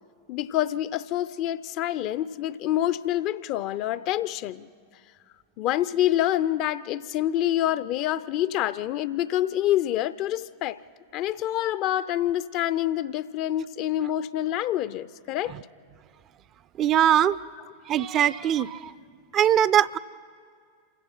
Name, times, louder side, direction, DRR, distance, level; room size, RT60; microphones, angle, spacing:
voice 1, 0.3-4.7 5.6-10.8 11.1-15.5, left 13 dB, 40° left, 16 dB, 0.5 m, -27 dB
voice 2, 16.8-17.4 17.9-18.9 19.3-20.0, right 10 dB, 30° right, 17 dB, 0.4 m, -21 dB
27.5 x 16.5 x 5.9 m, 2.1 s
figure-of-eight pair, 90°, 0 cm